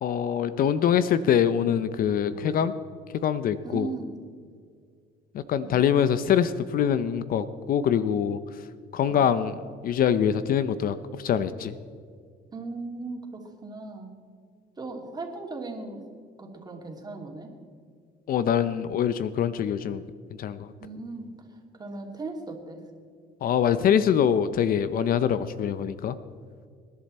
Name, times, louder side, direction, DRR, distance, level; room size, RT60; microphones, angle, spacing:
voice 1, 0.0-2.7 3.1-3.9 5.3-8.4 8.9-9.5 9.8-11.7 18.3-20.0 20.4-20.7 23.4-26.2, left 8 dB, 60° left, 13 dB, 0.8 m, -24 dB
voice 2, 3.6-4.1 5.7-5.8 9.1-9.3 12.5-14.1 14.8-16.0 16.4-17.5 20.8-22.8, right 3 dB, 25° right, 2 dB, 3.0 m, -38 dB
26.0 x 11.0 x 4.3 m, 2.2 s
cardioid pair, 110°, 17 cm